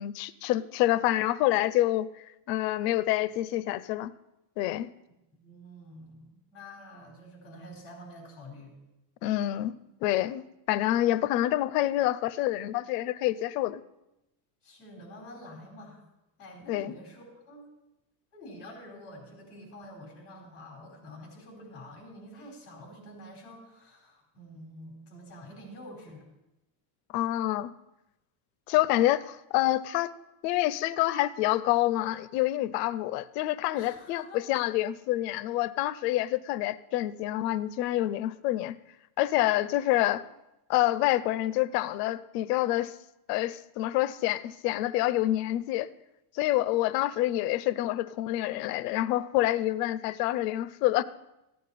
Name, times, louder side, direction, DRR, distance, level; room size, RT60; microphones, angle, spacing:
voice 1, 0.0-4.1 4.6-4.9 9.2-13.8 16.7-16.9 27.1-27.7 28.7-30.1 30.4-38.8 39.2-40.2 40.7-42.9 43.3-45.9 46.3-51.0, left 15 dB, 75° left, 17 dB, 0.7 m, -27 dB
voice 2, 5.1-8.8 14.6-16.0 16.4-17.7 18.3-26.3 33.7-34.4, left 1 dB, 30° left, 0 dB, 4.2 m, -47 dB
15.0 x 9.5 x 4.2 m, 0.92 s
cardioid pair, 170°, 48 cm